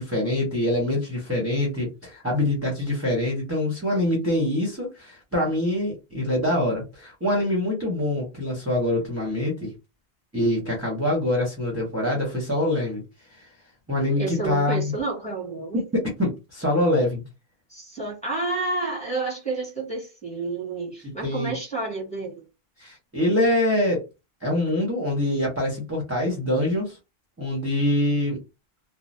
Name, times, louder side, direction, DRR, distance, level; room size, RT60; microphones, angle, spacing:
voice 1, 0.0-9.7 10.3-13.0 13.3-13.5 13.9-14.9 15.9-17.2 21.2-21.5 22.8-24.0 24.4-27.0 27.4-28.4, left 1 dB, 15° right, 0.9 m, -24 dB
voice 2, 14.2-15.8 17.7-22.4, right 3 dB, 5° left, 1.3 m, -30 dB
2.7 x 2.0 x 3.2 m
omnidirectional pair, 1.0 m